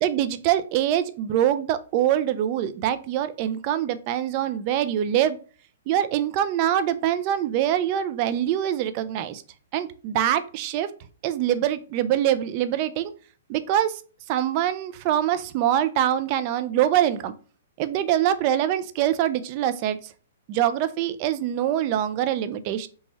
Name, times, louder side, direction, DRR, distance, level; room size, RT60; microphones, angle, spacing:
voice 1, 0.0-5.4 5.9-9.4 9.7-10.9 11.2-13.1 13.5-14.0 14.3-17.3 17.8-20.1 20.5-22.9, right 11 dB, 40° right, 11 dB, 0.3 m, -24 dB
2.9 x 2.2 x 3.1 m, 0.39 s
hypercardioid pair, 120°, 0 cm